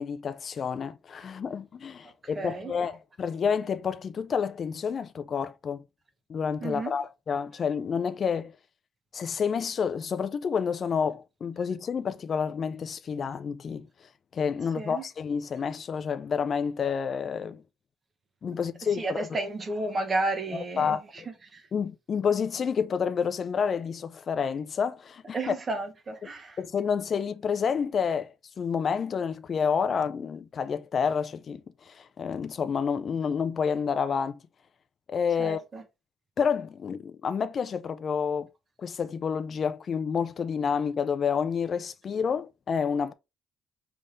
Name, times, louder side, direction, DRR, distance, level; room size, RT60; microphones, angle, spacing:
voice 1, 0.0-5.8 6.3-8.5 9.1-17.6 18.4-19.4 20.5-21.0 21.7-25.4 26.6-34.4 35.1-35.6 36.4-38.5 38.8-43.1, left 6 dB, 35° left, 0.4 m, -29 dB
voice 2, 2.3-2.7 6.6-7.0 14.8-15.1 18.9-21.7 25.3-26.6 35.4-35.8, right 2 dB, 25° right, 0.9 m, -32 dB
5.3 x 3.4 x 2.6 m
cardioid pair, 150°, 0 cm